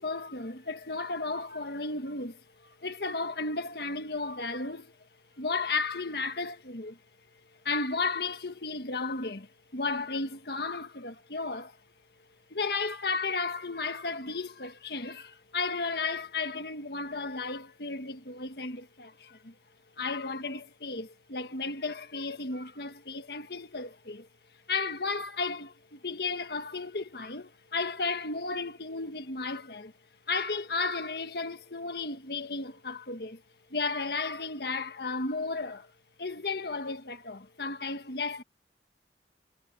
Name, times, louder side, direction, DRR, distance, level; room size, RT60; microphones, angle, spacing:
voice 1, 0.0-5.0 5.4-7.0 7.7-11.8 12.5-19.6 20.0-24.3 24.7-29.9 30.3-33.4 33.7-35.9 36.2-38.4, left 3 dB, 65° left, 1.6 m, -34 dB
head